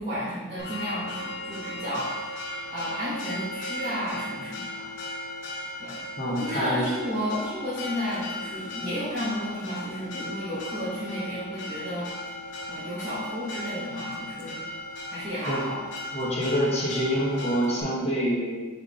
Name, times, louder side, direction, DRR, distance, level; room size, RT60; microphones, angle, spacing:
voice 1, 0.0-2.2 2.7-4.8 5.8-6.0 6.2-12.1 12.7-14.6 15.1-15.8, equal, 25° right, -13 dB, 1.3 m, -32 dB
Church bell, 0.6-17.8, left 1 dB, 60° left, 0.6 m, -37 dB
voice 2, 6.2-6.8 15.5-15.6 16.1-18.7, equal, 30° left, -5 dB, 0.9 m, -26 dB
4.4 x 3.4 x 3.6 m, 1.3 s
head